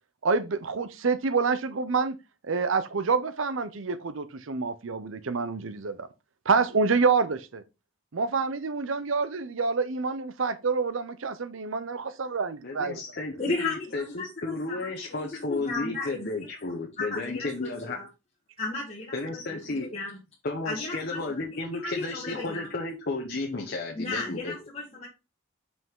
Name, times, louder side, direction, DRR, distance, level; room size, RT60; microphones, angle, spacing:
voice 1, 0.2-2.2 2.4-6.1 6.5-7.6 8.1-13.0, right 4 dB, 70° right, 0.6 m, -27 dB
voice 2, 12.6-18.0 19.1-19.9 20.4-24.5, left 2 dB, 50° left, 1.0 m, -33 dB
voice 3, 13.4-16.4 17.0-18.1 18.6-20.1 20.6-22.7 23.9-25.1, left 3 dB, 30° left, 1.4 m, -35 dB
5.5 x 5.4 x 3.7 m
head